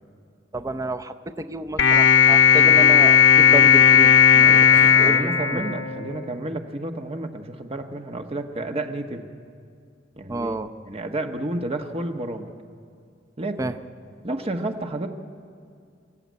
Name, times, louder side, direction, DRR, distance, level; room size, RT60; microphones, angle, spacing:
voice 1, 0.5-5.7 10.3-10.7 13.6-13.8, right 2 dB, 20° right, 8 dB, 0.6 m, -31 dB
sound 1, 1.8-6.3, left 8 dB, 85° left, 1.0 m, -15 dB
voice 2, 4.5-9.3 10.2-12.5 13.4-13.6 14.2-15.1, right 2 dB, 35° right, 5 dB, 1.3 m, -31 dB
25.0 x 14.0 x 9.5 m, 2.3 s
head